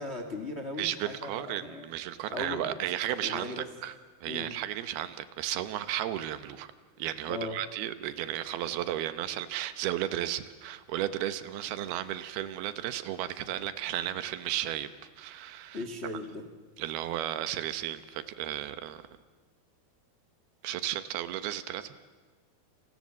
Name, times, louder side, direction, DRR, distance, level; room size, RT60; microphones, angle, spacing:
voice 1, 0.0-1.9 2.3-2.8 3.2-3.7 4.3-4.5 7.3-7.6 15.7-16.4, left 2 dB, 60° left, 7 dB, 0.6 m, -38 dB
voice 2, 0.8-3.9 4.2-6.7 7.0-14.9 15.2-15.8 16.8-19.0 20.6-21.9, right 12 dB, 75° right, 12 dB, 2.8 m, -34 dB
29.5 x 27.0 x 7.5 m, 1.3 s
omnidirectional pair, 4.7 m